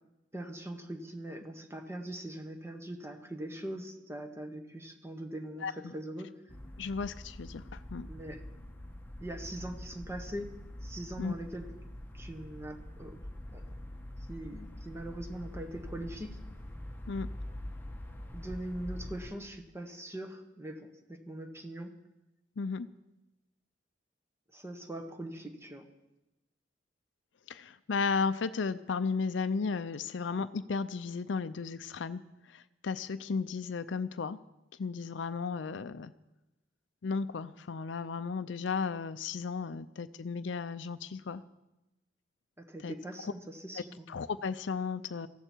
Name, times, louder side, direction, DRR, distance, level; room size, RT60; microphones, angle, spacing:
voice 1, 0.3-6.5 8.1-8.4 9.2-10.5 10.8-11.7 12.1-13.2 13.5-13.6 14.3-16.4 18.3-21.9 24.5-25.9 42.6-44.1, right 1 dB, 15° right, 5 dB, 1.4 m, -42 dB
sound 1, 6.5-19.3, left 1 dB, 10° left, 1.3 m, -44 dB
voice 2, 6.8-8.1 11.2-11.3 17.1-17.3 22.6-22.9 27.5-32.2 32.5-34.4 34.8-36.1 37.0-41.4 42.8-42.9 44.1-45.3, left 5 dB, 90° left, 12 dB, 0.5 m, -34 dB
17.5 x 14.5 x 4.6 m, 0.96 s
head